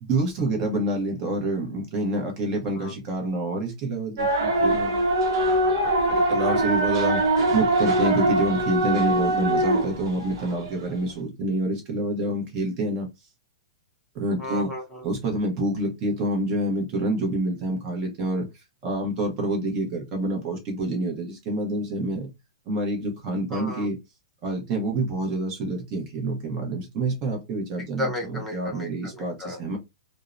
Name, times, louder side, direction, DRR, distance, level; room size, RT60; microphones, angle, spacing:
voice 1, 0.0-5.0 6.1-7.2 7.5-13.1 14.1-14.7 15.0-18.5 18.8-22.3 22.7-24.0 24.4-29.8, right 1 dB, 25° right, 0.8 m, -27 dB
sound 1, 4.2-10.8, right 1 dB, 55° right, 0.9 m, -23 dB
voice 2, 5.4-6.1 14.4-15.1 23.5-23.9 28.0-29.6, left 1 dB, 5° left, 0.7 m, -34 dB
2.6 x 2.0 x 2.3 m
hypercardioid pair, 170°, 3 cm